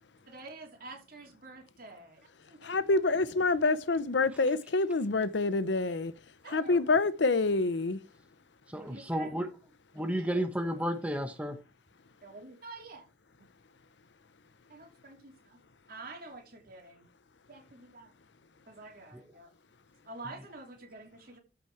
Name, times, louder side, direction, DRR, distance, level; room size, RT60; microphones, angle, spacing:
voice 1, 0.2-2.2 2.5-3.0 6.4-6.9 8.8-9.3 10.0-10.5 12.2-13.1 14.7-15.6 15.9-17.1 17.5-18.1 18.7-19.5 20.1-21.4, right 3 dB, 55° right, 2.8 m, -48 dB
voice 2, 2.6-6.1 6.5-8.0, left 3 dB, 75° left, 0.7 m, -27 dB
voice 3, 8.7-9.5 9.9-11.6 19.1-19.2, equal, 10° right, 0.9 m, -32 dB
14.0 x 4.8 x 4.5 m
head